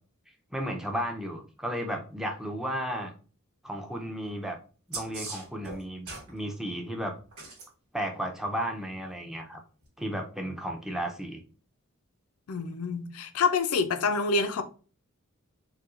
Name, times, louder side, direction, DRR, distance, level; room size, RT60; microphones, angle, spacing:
voice 1, 0.5-3.1 3.6-4.6 4.9-7.1 7.9-9.6 10.0-11.4, equal, ahead, 0.5 m, -34 dB
sound 1, 4.9-6.3 7.3-7.7 9.8-9.9, right 3 dB, 80° right, 1.3 m, -39 dB
voice 2, 12.5-14.6, left 4 dB, 75° left, 0.4 m, -27 dB
4.1 x 2.3 x 2.4 m
head